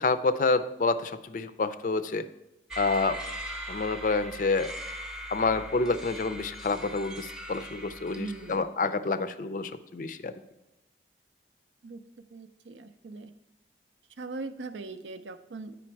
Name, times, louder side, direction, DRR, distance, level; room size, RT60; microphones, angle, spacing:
voice 1, 0.0-2.3 2.8-3.2 3.7-4.7 5.3-10.3, left 3 dB, 45° left, 13 dB, 0.4 m, -28 dB
sound 1, 2.7-8.6, right 1 dB, 5° right, 0.6 m, -40 dB
voice 2, 8.2-8.6 11.8-13.3 14.2-15.8, right 3 dB, 85° right, 10 dB, 0.5 m, -40 dB
8.5 x 5.1 x 4.5 m, 0.98 s
head